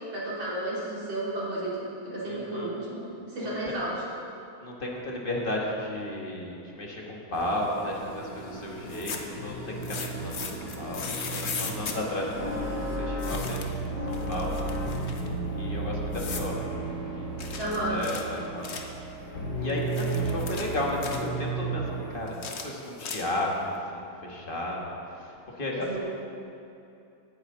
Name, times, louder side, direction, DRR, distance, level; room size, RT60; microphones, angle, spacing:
voice 1, 0.1-4.0 17.6-18.0 25.7-26.0, right 1 dB, 70° right, -7 dB, 3.9 m, -32 dB
voice 2, 2.2-2.8 4.6-14.7 15.5-16.6 17.1-18.6 19.6-23.5 23.9-26.0, left 1 dB, 30° left, -2 dB, 1.5 m, -34 dB
sound 1, 7.3-13.0, right 1 dB, 10° left, 1.6 m, -42 dB
sound 2, 8.4-22.2, right 2 dB, 75° left, 2.8 m, -33 dB
sound 3, 8.9-9.4 9.8-12.0 13.2-13.8 14.1-15.3 16.1-16.5 17.4-19.0 19.7-21.3 22.3-23.5, left 5 dB, 50° left, 0.8 m, -37 dB
17.0 x 9.2 x 3.8 m, 2.8 s
omnidirectional pair, 2.2 m